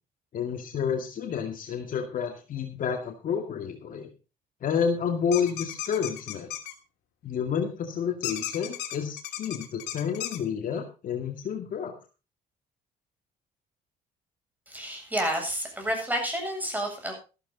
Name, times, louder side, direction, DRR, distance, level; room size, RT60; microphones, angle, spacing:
voice 1, 0.3-4.1 4.6-6.5 7.2-11.9, left 7 dB, 55° left, 4 dB, 2.2 m, -30 dB
sound 1, 5.3-6.7 8.2-10.4, left 12 dB, 85° left, 2.8 m, -35 dB
voice 2, 14.7-17.1, equal, 10° right, 3 dB, 7.8 m, -30 dB
14.0 x 13.0 x 4.0 m, 0.32 s
cardioid pair, 110°, 17 cm